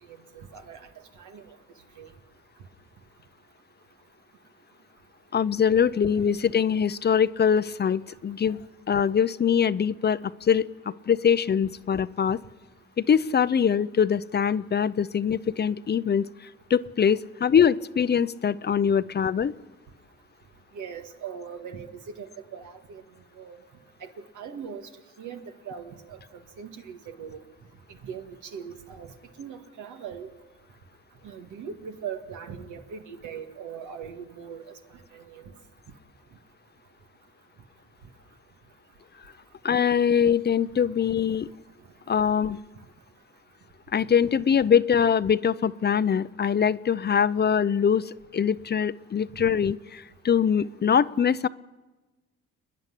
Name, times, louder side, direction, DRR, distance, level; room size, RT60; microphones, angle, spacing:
voice 1, 0.1-0.8 1.2-1.5 2.0-2.1 20.7-23.0 23.4-23.6 24.0-24.1 24.4-24.9 25.2-26.2 26.6-27.4 28.0-29.1 29.4-30.3 31.2-34.6 35.1-35.5, right 7 dB, 80° right, 5 dB, 2.0 m, -40 dB
voice 2, 5.3-8.6 8.9-10.7 11.1-12.4 13.1-16.3 16.7-19.5 39.6-41.5 42.1-42.6 43.9-51.5, left 7 dB, 35° left, 16 dB, 0.6 m, -23 dB
29.0 x 10.5 x 10.0 m, 1.2 s
cardioid pair, 90°, 30 cm